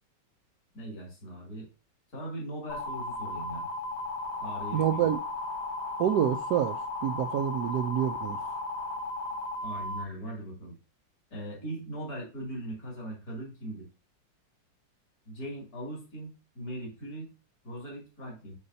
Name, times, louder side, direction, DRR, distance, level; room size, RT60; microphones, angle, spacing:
voice 1, 0.7-1.7 2.1-3.7 4.4-5.2 9.6-10.8 11.3-13.8 15.2-17.3 17.6-18.5, right 1 dB, 50° left, 3.2 m, -39 dB
sound 1, 2.7-10.0, left 2 dB, 65° left, 1.5 m, -35 dB
voice 2, 4.7-5.2 6.0-8.4, right 10 dB, 75° right, 1.1 m, -27 dB
8.5 x 4.5 x 2.7 m
omnidirectional pair, 2.0 m